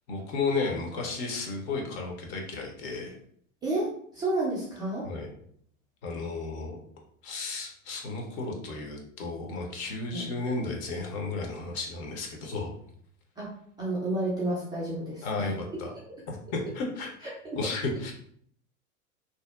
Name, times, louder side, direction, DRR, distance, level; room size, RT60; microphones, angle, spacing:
voice 1, 0.1-3.2 5.0-5.3 6.0-6.8 7.2-12.7 15.2-15.9 16.3-18.1, left 3 dB, 45° left, 1 dB, 0.7 m, -33 dB
voice 2, 4.1-5.1 10.1-10.2 13.4-13.5 13.8-15.3 17.4-17.6, right 2 dB, 10° right, -8 dB, 0.3 m, -30 dB
2.7 x 2.0 x 2.2 m, 0.64 s
hypercardioid pair, 100°, 44 cm